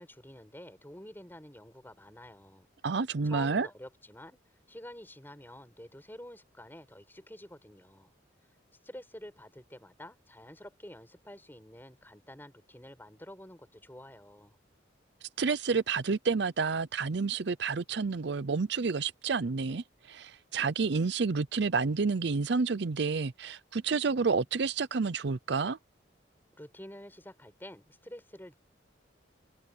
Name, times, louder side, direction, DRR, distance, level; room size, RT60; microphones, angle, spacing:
voice 1, 0.0-2.7 3.2-4.4 4.7-8.1 8.8-14.6 26.6-28.5, left 1 dB, 10° left, 5.8 m, -49 dB
voice 2, 2.8-3.7 15.4-25.8, right 4 dB, 60° right, 0.6 m, -29 dB
head